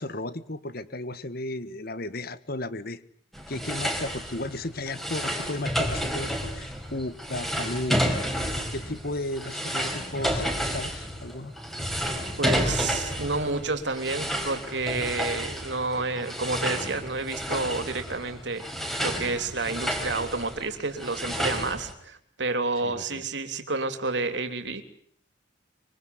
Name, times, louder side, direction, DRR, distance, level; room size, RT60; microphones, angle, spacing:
voice 1, 0.0-3.0 3.5-11.5 19.1-19.4 22.8-23.2, left 2 dB, 50° left, 14 dB, 1.5 m, -35 dB
sound 1, 3.3-21.9, equal, ahead, 4.4 m, -31 dB
voice 2, 12.4-18.6 19.0-24.8, right 3 dB, 65° right, 8 dB, 3.2 m, -30 dB
25.0 x 23.5 x 9.5 m, 0.63 s
head